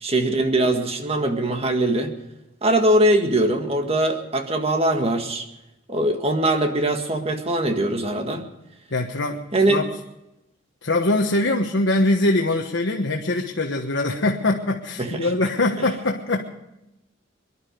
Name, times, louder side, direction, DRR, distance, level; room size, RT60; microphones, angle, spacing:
voice 1, 0.0-2.1 2.6-5.4 5.9-8.5 9.5-9.8 15.0-15.3, right 1 dB, 30° right, 5 dB, 1.7 m, -21 dB
voice 2, 8.9-9.4 9.7-9.9 10.8-16.4, left 2 dB, 70° left, 0 dB, 1.3 m, -22 dB
23.5 x 11.5 x 5.2 m, 0.90 s
head